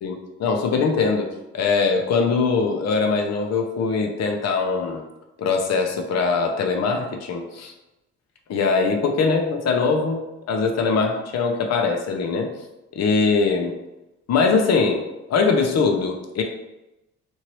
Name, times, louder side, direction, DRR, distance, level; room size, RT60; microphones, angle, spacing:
voice 1, 0.0-5.0 5.4-7.7 8.5-12.5 13.0-13.7 14.3-15.0 15.3-16.4, left 4 dB, 60° left, 3 dB, 0.7 m, -22 dB
3.0 x 2.6 x 3.0 m, 0.96 s
cardioid pair, 90°, 30 cm